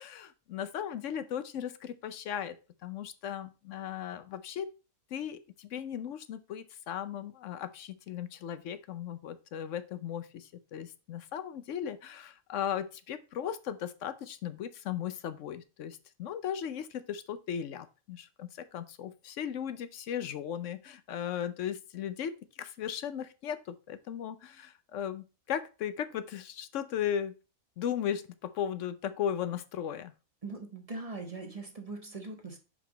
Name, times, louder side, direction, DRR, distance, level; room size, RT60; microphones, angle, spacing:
voice 1, 0.0-2.6 2.8-4.7 5.1-27.3 27.8-30.1, left 9 dB, 75° left, 13 dB, 1.0 m, -37 dB
voice 2, 30.4-32.6, right 3 dB, 30° right, 4 dB, 1.1 m, -41 dB
5.6 x 5.0 x 3.9 m, 0.31 s
omnidirectional pair, 1.3 m